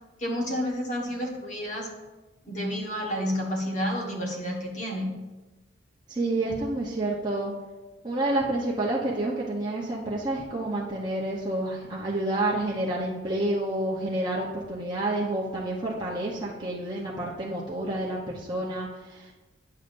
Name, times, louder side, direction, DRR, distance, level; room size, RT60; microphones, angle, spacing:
voice 1, 0.2-1.9 2.4-5.2, equal, 45° left, 0 dB, 1.5 m, -30 dB
voice 2, 6.1-7.5 8.0-19.3, right 1 dB, 25° right, -6 dB, 0.9 m, -29 dB
9.3 x 7.1 x 2.6 m, 1.2 s
head